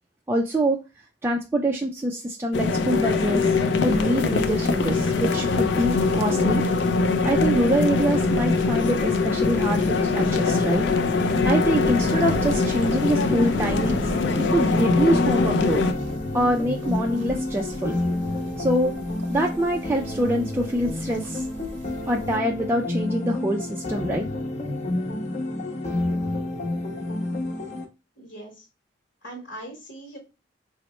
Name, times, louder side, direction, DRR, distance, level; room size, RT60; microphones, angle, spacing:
voice 1, 0.3-0.8 1.2-3.5 3.8-6.6 7.2-10.9 11.4-14.1 14.4-15.9 16.3-18.0 18.6-19.0 19.3-21.4 22.1-24.3, right 1 dB, 15° right, 0 dB, 0.3 m, -25 dB
sound 1, 2.5-15.9, left 3 dB, 80° left, 0.4 m, -22 dB
sound 2, 4.4-22.4, right 2 dB, 85° right, 0.5 m, -43 dB
sound 3, 11.8-27.8, left 1 dB, 40° left, 0.8 m, -30 dB
voice 2, 28.2-28.7 29.2-30.2, right 1 dB, 60° left, 0 dB, 1.1 m, -40 dB
4.2 x 2.0 x 2.9 m, 0.29 s
head